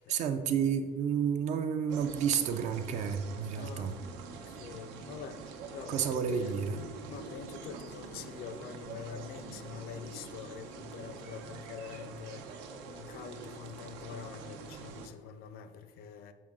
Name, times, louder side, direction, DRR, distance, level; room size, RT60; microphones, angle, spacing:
voice 1, 0.0-4.0 5.9-6.8, right 7 dB, 40° right, 9 dB, 0.4 m, -31 dB
sound 1, 1.9-15.1, right 5 dB, 80° right, 0.8 m, -46 dB
voice 2, 3.5-4.0 4.2-5.4 5.7-12.4 12.9-16.3, left 7 dB, 55° left, 10 dB, 0.6 m, -45 dB
7.6 x 4.6 x 3.6 m, 1.5 s
cardioid pair, 180°, 18 cm